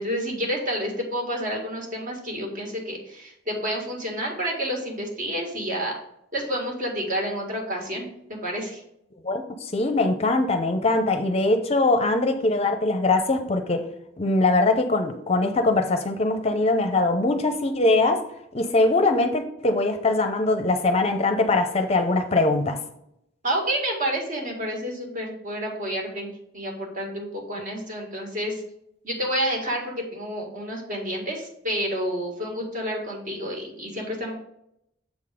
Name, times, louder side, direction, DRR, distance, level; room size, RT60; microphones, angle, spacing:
voice 1, 0.0-5.9 6.3-8.8 23.4-28.6 29.0-34.3, equal, 45° right, 0 dB, 1.8 m, -29 dB
voice 2, 9.2-13.9 14.2-18.2 18.5-22.8, left 2 dB, 35° left, 7 dB, 0.6 m, -22 dB
7.2 x 3.9 x 4.9 m, 0.78 s
head